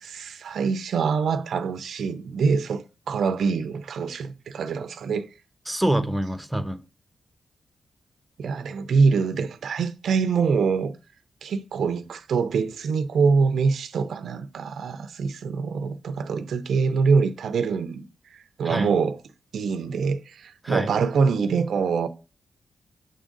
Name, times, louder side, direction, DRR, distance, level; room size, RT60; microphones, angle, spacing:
voice 1, 0.0-5.3 8.4-10.9 11.4-18.1 18.3-19.2 19.5-22.1, right 5 dB, 80° right, 0.5 m, -24 dB
voice 2, 5.7-6.8 18.6-18.9 20.6-20.9, right 1 dB, 10° right, 0.9 m, -25 dB
6.6 x 3.7 x 5.1 m
cardioid pair, 65°, 0 cm